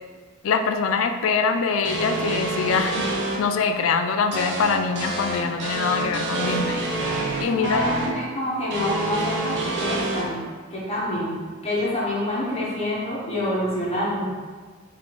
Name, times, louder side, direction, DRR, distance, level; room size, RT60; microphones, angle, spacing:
voice 1, 0.4-3.1 3.4-6.9 7.4-8.1, left 5 dB, 70° left, 7 dB, 0.3 m, -24 dB
sound 1, 1.8-3.4 4.3-8.1 8.7-10.2, right 2 dB, 60° right, 0.8 m, -27 dB
voice 2, 7.4-10.4 10.7-14.3, left 1 dB, 30° left, -6 dB, 1.1 m, -27 dB
3.8 x 3.7 x 3.2 m, 1.5 s
head